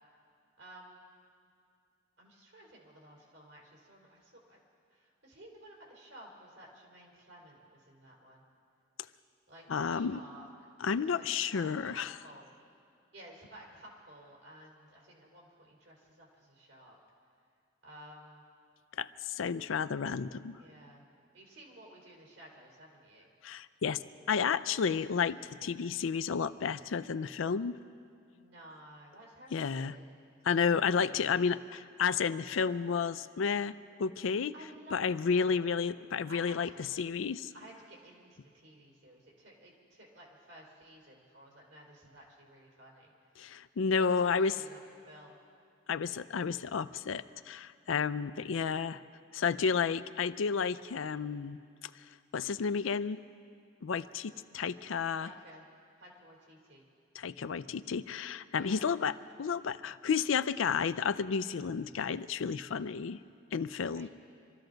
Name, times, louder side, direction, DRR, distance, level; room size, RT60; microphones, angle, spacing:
voice 1, 0.6-1.0 2.2-4.6 4.9-8.4 9.5-10.5 10.9-12.5 13.1-17.0 17.8-18.4 20.6-21.0 21.3-23.3 28.3-30.0 34.5-35.0 35.3-35.7 36.3-36.7 37.5-43.5 43.8-44.8 45.1-45.4 55.2-55.6 56.0-56.9 58.5-58.8 63.8-64.1, right 1 dB, 70° right, -2 dB, 3.7 m, -54 dB
voice 2, 9.7-10.2 10.8-12.1 19.0-20.6 23.4-24.0 24.3-27.8 29.5-30.0 30.4-34.5 34.9-36.7 37.0-37.5 43.4-44.5 45.9-49.0 49.3-51.6 52.3-53.2 53.8-55.3 57.1-63.2 63.5-64.1, left 6 dB, 85° left, 14 dB, 0.4 m, -31 dB
25.5 x 14.0 x 3.9 m, 2.4 s
head